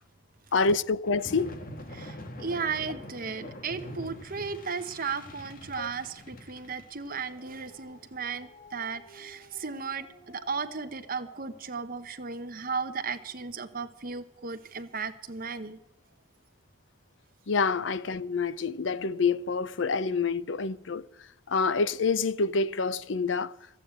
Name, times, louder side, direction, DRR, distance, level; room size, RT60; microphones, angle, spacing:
voice 1, 0.5-1.6 5.7-5.9 17.5-21.1 21.5-23.5, left 4 dB, 65° left, 0.6 m, -27 dB
sound 1, 1.1-11.6, left 1 dB, 45° left, 1.4 m, -46 dB
voice 2, 1.9-15.8, right 5 dB, 45° right, 1.0 m, -35 dB
13.5 x 8.7 x 8.8 m
head